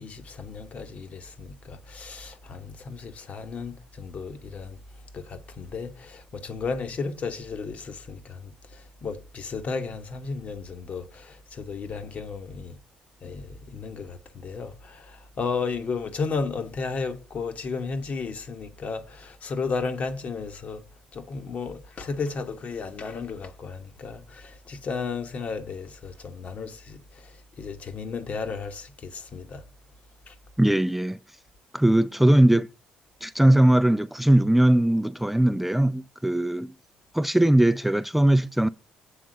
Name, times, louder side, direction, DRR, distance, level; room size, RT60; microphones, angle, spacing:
voice 1, 0.0-4.8 5.1-12.8 13.2-20.8 21.1-29.6 30.3-30.4, left 4 dB, 50° left, 1.2 m, -34 dB
voice 2, 30.6-31.4 31.7-32.7 33.2-36.7 37.1-38.7, right 1 dB, 5° right, 0.3 m, -20 dB
7.8 x 3.7 x 6.4 m
supercardioid pair, 65°, 3 cm